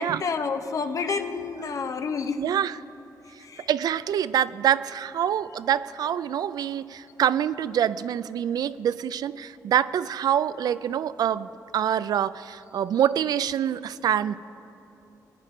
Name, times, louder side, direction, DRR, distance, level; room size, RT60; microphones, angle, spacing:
voice 1, 0.0-2.4 3.4-3.7, left 5 dB, 55° left, 8 dB, 0.8 m, -29 dB
voice 2, 2.4-2.8 3.7-14.4, right 9 dB, 80° right, 16 dB, 0.3 m, -25 dB
18.5 x 9.7 x 4.9 m, 3.0 s
cardioid pair, 105°, 7 cm